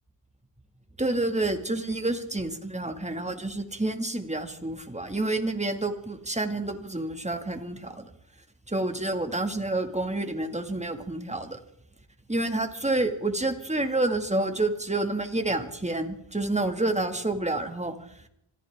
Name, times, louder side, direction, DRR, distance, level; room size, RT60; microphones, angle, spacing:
voice 1, 1.0-8.1 8.7-11.6 12.3-17.9, right 2 dB, 15° right, 6 dB, 2.3 m, -29 dB
26.0 x 14.5 x 3.7 m, 0.72 s
cardioid pair, 50°, 48 cm